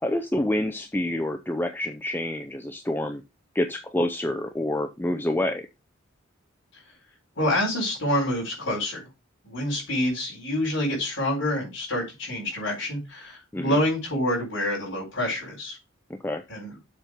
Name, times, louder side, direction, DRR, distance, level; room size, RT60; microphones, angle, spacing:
voice 1, 0.0-3.2 3.5-5.7 13.5-13.8 16.1-16.4, left 1 dB, 10° left, 6 dB, 0.5 m, -27 dB
voice 2, 7.4-9.0 9.4-15.8 16.5-16.7, left 1 dB, 65° left, -5 dB, 4.2 m, -27 dB
7.4 x 4.4 x 5.0 m, 0.24 s
head